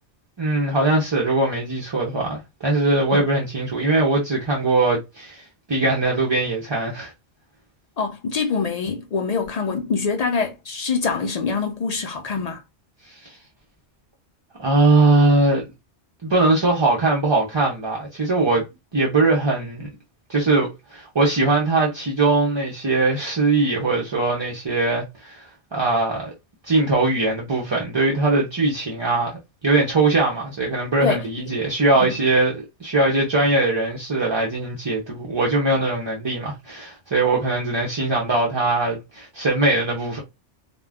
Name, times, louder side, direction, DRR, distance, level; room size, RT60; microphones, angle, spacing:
voice 1, 0.4-5.4 5.7-7.1 13.2-13.3 14.6-15.6 16.2-18.6 18.9-19.9 20.3-26.3 26.6-40.2, right 2 dB, 35° right, 0.4 m, -21 dB
voice 2, 8.0-12.6 31.0-31.5 32.0-32.1, left 5 dB, 65° left, 0.4 m, -25 dB
2.4 x 2.2 x 3.3 m
omnidirectional pair, 1.2 m